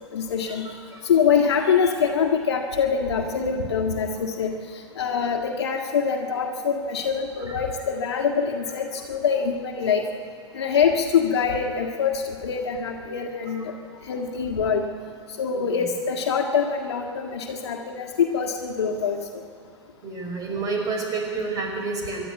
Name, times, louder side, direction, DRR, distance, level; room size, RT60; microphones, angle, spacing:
voice 1, 0.1-0.7 1.0-10.0 10.5-13.7 14.0-14.9 15.4-19.4, left 6 dB, 60° left, 1 dB, 1.8 m, -24 dB
voice 2, 15.5-15.9 20.0-22.3, right 4 dB, 25° right, 1 dB, 5.5 m, -29 dB
25.0 x 12.0 x 9.2 m, 2.2 s
figure-of-eight pair, 100°, 15 cm